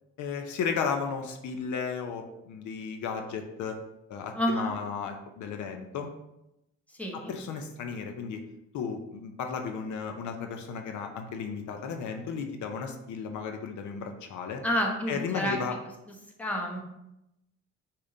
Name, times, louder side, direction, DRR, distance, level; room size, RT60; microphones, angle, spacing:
voice 1, 0.2-3.8 4.1-6.1 7.3-8.4 8.7-14.6 15.1-15.8, left 6 dB, 75° left, 5 dB, 0.6 m, -34 dB
voice 2, 4.3-4.7 7.0-7.3 14.6-15.6 16.4-16.8, equal, 5° left, 0 dB, 1.0 m, -29 dB
4.9 x 2.8 x 3.8 m, 0.89 s
cardioid pair, 90°, 30 cm